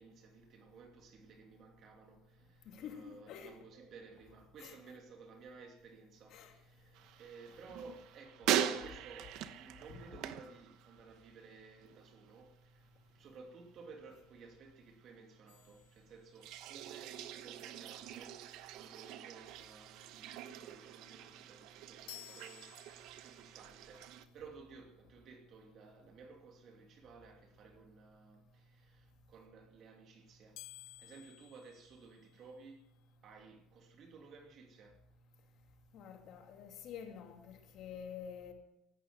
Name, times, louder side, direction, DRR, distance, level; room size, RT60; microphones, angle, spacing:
voice 1, 0.0-12.9 13.1-30.6 31.0-32.8 33.2-35.0, right 4 dB, 40° right, 2.7 m, -56 dB
voice 2, 2.7-3.6 4.6-4.9 6.3-6.5 9.9-10.0 35.9-38.5, left 8 dB, 50° left, 2.5 m, -48 dB
sound 1, 6.9-11.4 11.6-12.2 16.4-24.3, right 10 dB, 60° right, 1.0 m, -42 dB
sound 2, 15.5-16.8 22.1-23.6 30.6-32.7, left 21 dB, 80° left, 0.8 m, -55 dB
16.0 x 12.0 x 6.3 m
cardioid pair, 155°, 0 cm